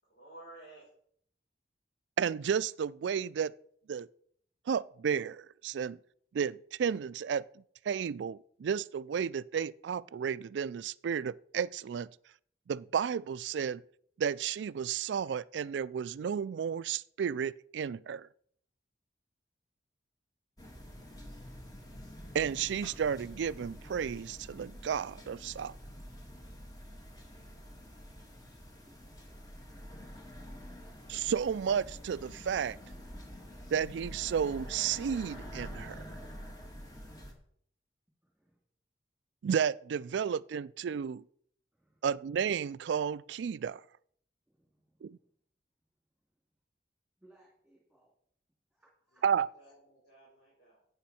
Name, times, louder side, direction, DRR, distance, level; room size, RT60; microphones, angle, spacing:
voice 1, 0.0-0.9 49.1-50.8, right 2 dB, 65° left, 4.8 m, -54 dB
voice 2, 2.2-3.5 3.9-4.1 4.7-6.0 6.3-7.4 7.9-12.1 12.7-13.8 14.2-18.3 22.3-25.7 31.1-32.8 33.7-36.0 39.4-41.2 42.0-43.8 45.0-45.2 49.2-49.5, right 7 dB, 80° right, 0.3 m, -32 dB
sound 1, 20.6-37.3, equal, 20° left, 1.7 m, -47 dB
voice 3, 28.1-29.5 38.2-38.6 41.7-42.0 44.5-45.2 47.2-48.1 48.7-49.5, right 1 dB, ahead, 2.7 m, -67 dB
11.5 x 8.5 x 4.3 m
head